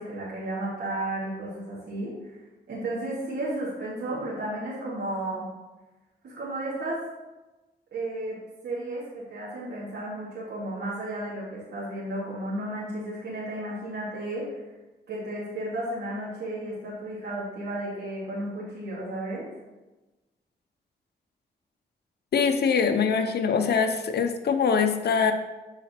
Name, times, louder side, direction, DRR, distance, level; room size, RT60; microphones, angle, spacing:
voice 1, 0.0-2.1 2.7-5.4 6.2-7.0 7.9-8.4 8.6-14.5 15.1-19.5, right 1 dB, 85° right, -8 dB, 2.4 m, -33 dB
voice 2, 22.3-25.3, left 6 dB, 70° left, 6 dB, 0.8 m, -23 dB
9.9 x 4.1 x 4.5 m, 1.1 s
cardioid pair, 80°, 17 cm